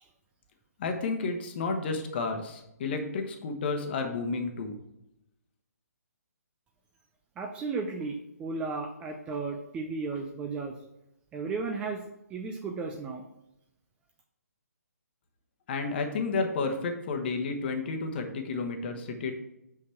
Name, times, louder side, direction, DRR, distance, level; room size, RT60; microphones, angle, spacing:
voice 1, 0.8-4.8 15.7-19.3, left 4 dB, 40° left, 4 dB, 1.2 m, -31 dB
voice 2, 7.4-10.8 11.3-12.0 12.3-13.3, right 4 dB, 10° right, 3 dB, 0.5 m, -34 dB
6.2 x 5.7 x 4.5 m, 0.86 s
figure-of-eight pair, 140°, 9 cm